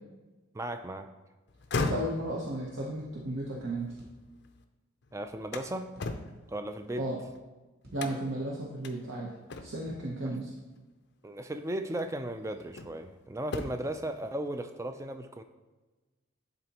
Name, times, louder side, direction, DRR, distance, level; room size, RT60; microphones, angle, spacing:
voice 1, 0.5-1.1 5.1-5.9 6.5-7.0 11.2-15.4, right 1 dB, 15° right, 8 dB, 0.3 m, -36 dB
sound 1, 1.5-4.6 5.0-7.4 8.0-8.4 8.8-9.0 9.5-10.0 11.2-11.4 12.0-13.1 13.4-14.0, left 3 dB, 55° left, 0.5 m, -38 dB
voice 2, 1.8-3.9 7.0-7.2 7.9-9.3 9.6-10.5, right 1 dB, 65° right, -4 dB, 0.9 m, -34 dB
sound 2, 4.0-4.2 5.9-6.2 7.8-8.1 9.8-10.1, equal, 50° right, 1.5 m, -53 dB
11.0 x 4.0 x 2.9 m, 1.2 s
head